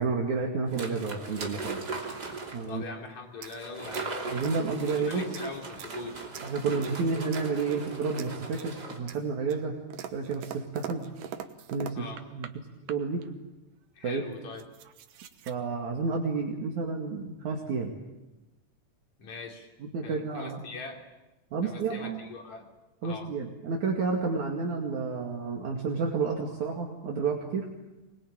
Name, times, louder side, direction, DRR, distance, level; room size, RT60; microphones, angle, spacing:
voice 1, 0.0-1.8 2.5-2.8 4.3-5.3 6.4-9.7 10.1-11.0 11.7-12.5 12.9-13.2 14.0-14.2 15.5-18.0 19.8-20.6 21.5-22.2 23.0-27.7, right 4 dB, 65° right, -1 dB, 3.7 m, -30 dB
sound 1, 0.7-2.7 3.6-9.0, right 3 dB, 30° right, 3.3 m, -38 dB
voice 2, 2.7-4.2 4.9-6.3 11.9-12.2 14.0-14.7 19.2-19.7 20.0-21.0 21.6-22.7 23.0-23.3, left 4 dB, 60° left, 2 dB, 4.6 m, -42 dB
sound 2, 3.3-5.0 5.3-6.0 6.3-7.0 7.3-7.9 8.2-8.8 9.1-12.5 12.9-13.3 14.0-14.1 14.3-15.5, right 9 dB, 85° right, 2.8 m, -44 dB
25.5 x 21.0 x 9.0 m, 1.0 s
omnidirectional pair, 3.6 m